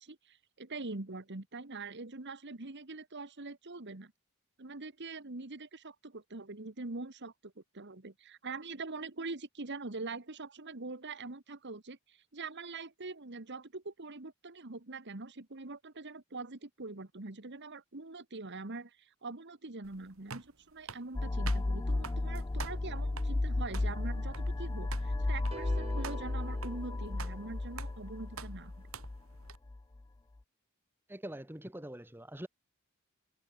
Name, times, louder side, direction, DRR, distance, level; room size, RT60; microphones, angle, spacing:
voice 1, 0.0-4.1 4.6-28.7, right 3 dB, 55° right, 1.7 m, -43 dB
sound 1, 19.8-29.6, right 5 dB, 70° right, 2.5 m, -49 dB
sound 2, 21.1-29.8, left 2 dB, 15° left, 0.3 m, -34 dB
sound 3, 25.5-27.8, right 2 dB, 30° right, 3.0 m, -48 dB
voice 2, 31.1-32.5, right 1 dB, 10° right, 1.8 m, -44 dB
head